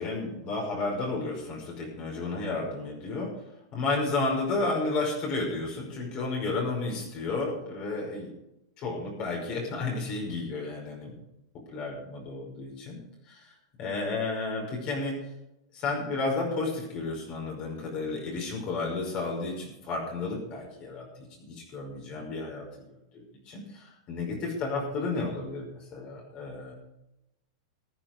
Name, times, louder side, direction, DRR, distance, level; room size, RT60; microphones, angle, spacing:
voice 1, 0.0-3.3 3.7-8.3 8.8-11.1 11.7-13.0 13.3-13.5 13.8-15.2 15.7-22.7 23.1-26.7, left 3 dB, 40° left, -1 dB, 5.5 m, -32 dB
14.5 x 9.8 x 5.2 m, 0.89 s
hypercardioid pair, 135°, 3 cm